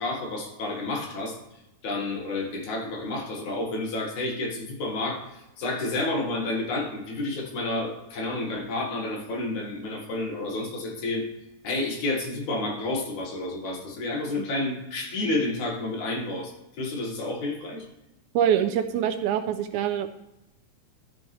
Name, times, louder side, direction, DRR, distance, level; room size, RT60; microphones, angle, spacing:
voice 1, 0.0-1.4 1.8-11.3 11.6-17.9, left 2 dB, 65° left, 1 dB, 3.0 m, -30 dB
voice 2, 18.4-20.1, right 9 dB, 80° right, 8 dB, 1.9 m, -24 dB
12.5 x 6.9 x 3.2 m, 0.91 s
omnidirectional pair, 3.7 m